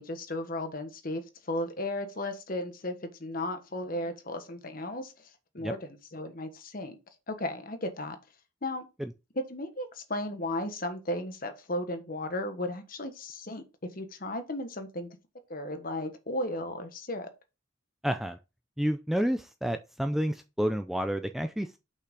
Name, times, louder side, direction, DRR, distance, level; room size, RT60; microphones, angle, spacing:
voice 1, 0.0-5.1 5.5-7.0 7.3-8.2 8.6-8.9 9.3-13.6 13.9-15.1 15.5-17.3, left 1 dB, 45° left, 1.4 m, -35 dB
voice 2, 18.0-18.4 18.8-21.8, equal, ahead, 0.4 m, -30 dB
6.7 x 5.6 x 3.9 m
head